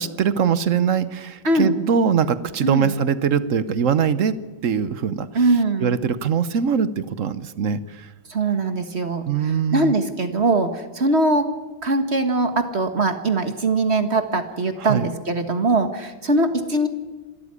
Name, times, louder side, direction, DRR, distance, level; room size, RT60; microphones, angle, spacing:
voice 1, 0.0-8.1 9.3-9.9 14.8-15.1, right 7 dB, 55° right, 15 dB, 1.0 m, -22 dB
voice 2, 2.6-2.9 5.4-5.9 8.3-9.3 9.7-11.5 11.8-16.9, right 2 dB, 35° right, 8 dB, 1.7 m, -21 dB
25.5 x 13.0 x 9.7 m, 1.3 s
omnidirectional pair, 2.1 m